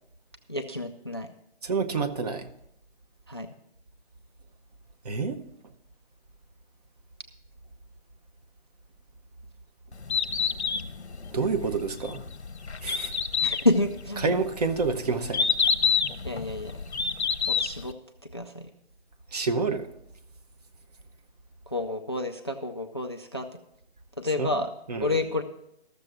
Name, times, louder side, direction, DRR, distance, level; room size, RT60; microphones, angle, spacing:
voice 1, 0.5-1.3 3.3-3.5 13.4-14.4 16.2-16.8 17.5-17.9 18.3-18.7 21.7-23.5 24.2-24.7 25.0-25.4, left 2 dB, 25° left, 7 dB, 0.3 m, -29 dB
voice 2, 1.6-2.5 5.0-5.4 11.3-12.2 12.8-13.1 14.2-15.5 19.3-19.9 24.4-24.6 24.9-25.2, right 4 dB, 35° right, 7 dB, 0.9 m, -28 dB
Bird, 9.9-17.9, left 6 dB, 90° left, 1.0 m, -28 dB
13.5 x 6.8 x 6.0 m, 0.78 s
figure-of-eight pair, 155°, 32 cm